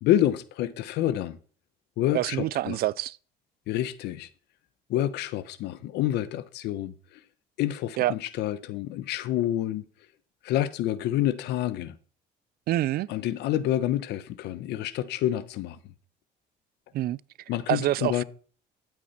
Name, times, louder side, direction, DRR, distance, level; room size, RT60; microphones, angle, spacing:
voice 1, 0.0-1.4 2.0-2.8 3.7-4.3 4.9-6.9 7.6-9.8 10.4-12.0 13.1-15.8 17.5-18.2, left 12 dB, 80° left, 1.1 m, -28 dB
voice 2, 2.1-3.2 8.0-8.1 12.7-13.1 16.9-17.2 17.7-18.2, right 14 dB, 65° right, 0.5 m, -26 dB
13.0 x 8.7 x 4.4 m
cardioid pair, 110°, 17 cm